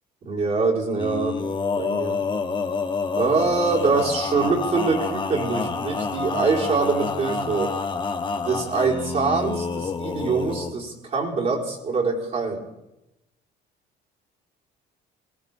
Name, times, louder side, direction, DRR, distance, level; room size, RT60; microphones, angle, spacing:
voice 1, 0.2-1.4 1.8-2.2 3.1-7.7 8.4-12.7, right 4 dB, 45° right, -5 dB, 4.3 m, -24 dB
Male singing, 0.9-10.7, left 4 dB, 30° left, 1.5 m, -28 dB
20.5 x 17.5 x 3.7 m, 0.90 s
cardioid pair, 110°, 17 cm